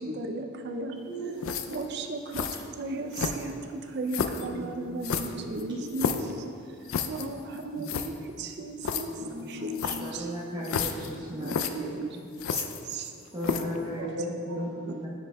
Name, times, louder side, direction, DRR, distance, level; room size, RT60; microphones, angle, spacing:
voice 1, 0.1-1.0 1.7-6.2 7.1-9.1 9.5-10.3 11.4-12.2 12.5-12.6 12.9-13.1 14.0-14.1 14.9-15.0, right 3 dB, 50° right, 4 dB, 0.4 m, -36 dB
voice 2, 1.0-1.9 3.0-3.1 4.3-6.3 7.8-8.1 9.0-10.1 11.3-11.7 12.0-12.2 13.5-13.7 14.0-15.1, equal, 75° right, 0 dB, 0.9 m, -38 dB
sound 1, 1.4-1.9 2.3-2.6 3.1-3.6 4.1-4.5 5.0-6.3 6.9-7.3 7.6-7.7 7.8-8.1 8.8-9.0 9.8-10.1 10.6-11.1 11.4-11.7 12.4-13.1 13.4-13.8, left 6 dB, 65° left, 0.3 m, -31 dB
voice 3, 10.0-11.5 11.9-12.0 13.3-14.2 14.6-14.7, equal, 20° right, -7 dB, 0.9 m, -35 dB
9.8 x 5.3 x 2.2 m, 2.3 s
head